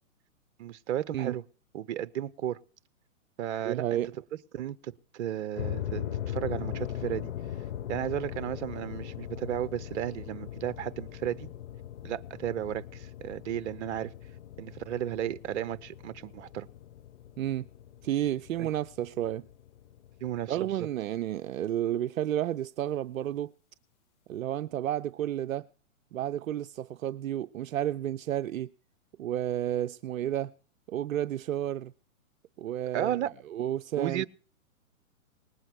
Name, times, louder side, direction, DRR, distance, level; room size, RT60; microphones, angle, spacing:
voice 1, 0.6-1.4 1.7-2.6 3.4-4.0 4.5-7.3 7.9-11.5 12.0-14.1 14.6-16.7 18.6-18.7 20.2-20.7 32.9-33.3 34.0-34.3, right 11 dB, 55° right, 1.0 m, -34 dB
voice 2, 3.6-4.1 17.4-17.6 18.0-19.5 20.5-23.5 24.3-25.7 26.1-28.7 29.2-30.5 30.9-31.9 32.6-33.2 33.5-34.2, right 12 dB, 75° right, 0.6 m, -31 dB
sound 1, 5.6-20.8, left 11 dB, 55° left, 1.4 m, -40 dB
19.5 x 7.9 x 6.1 m
hypercardioid pair, 130°, 41 cm